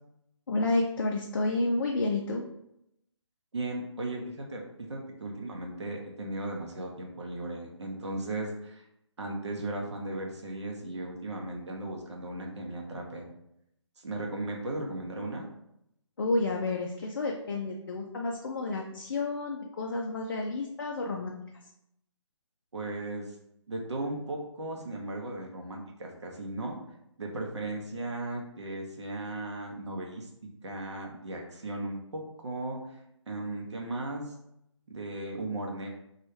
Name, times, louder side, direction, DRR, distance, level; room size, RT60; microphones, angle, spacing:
voice 1, 0.5-2.4 16.2-21.4, left 2 dB, 45° left, 0 dB, 0.4 m, -30 dB
voice 2, 3.5-8.8 9.2-13.3 14.0-15.5 22.7-23.4 23.7-26.7 27.2-30.3 30.6-33.0 33.3-34.3 34.9-35.9, right 2 dB, 65° right, 0 dB, 0.7 m, -36 dB
3.0 x 2.3 x 3.0 m, 0.80 s
figure-of-eight pair, 145°, 16 cm